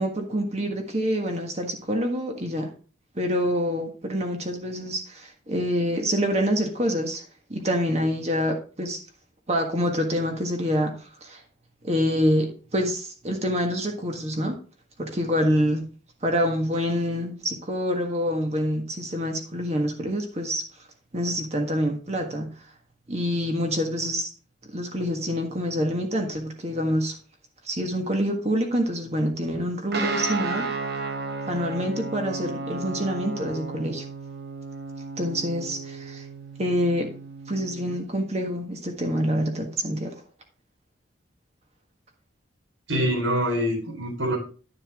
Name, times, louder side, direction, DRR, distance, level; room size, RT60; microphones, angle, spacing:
voice 1, 0.0-2.7 3.1-7.2 7.5-9.0 9.5-11.4 11.8-14.6 15.0-15.9 16.2-20.6 21.1-22.5 23.1-24.3 24.7-27.1 27.6-30.7 31.5-34.0 35.2-36.2 36.6-37.1 37.5-40.1, equal, 35° right, 3 dB, 1.6 m, -26 dB
Guitar, 29.9-38.0, right 3 dB, 55° right, 1.2 m, -33 dB
voice 2, 42.9-44.4, equal, 85° right, -1 dB, 4.5 m, -25 dB
10.5 x 6.8 x 3.7 m, 0.38 s
head